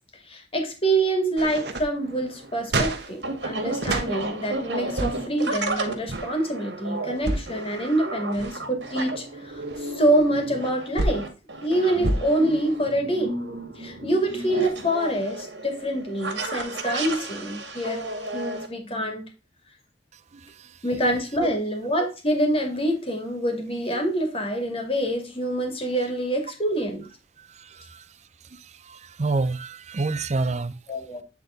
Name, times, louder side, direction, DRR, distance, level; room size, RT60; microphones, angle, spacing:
voice 1, 0.3-11.3 11.6-13.3 13.8-19.3 20.8-27.0 30.9-31.2, right 1 dB, 35° left, 2.2 m, -26 dB
sound 1, 1.4-4.1 4.8-5.4 6.0-6.3 7.0-7.6 8.1-8.7 9.3-11.3 12.0-12.2, right 2 dB, 70° right, 1.2 m, -29 dB
sound 2, 2.0-18.7, right 2 dB, 90° right, 1.9 m, -33 dB
voice 2, 20.1-20.8 21.4-21.5 27.4-28.2 28.4-30.8, right 3 dB, 40° right, 0.5 m, -29 dB
8.8 x 4.0 x 3.7 m
head